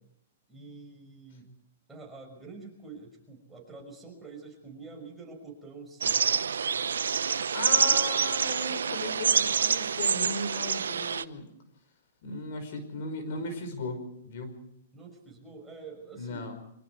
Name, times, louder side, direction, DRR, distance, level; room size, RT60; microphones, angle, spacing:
voice 1, 0.5-1.5 1.9-6.2 14.9-16.5, right 4 dB, 10° right, 0 dB, 6.0 m, -46 dB
sound 1, 6.0-11.2, right 6 dB, 90° right, 0.8 m, -27 dB
voice 2, 7.5-11.5 12.2-14.6 16.2-16.6, left 3 dB, 55° left, 8 dB, 5.4 m, -36 dB
25.0 x 24.5 x 4.8 m, 0.73 s
hypercardioid pair, 140°, 0 cm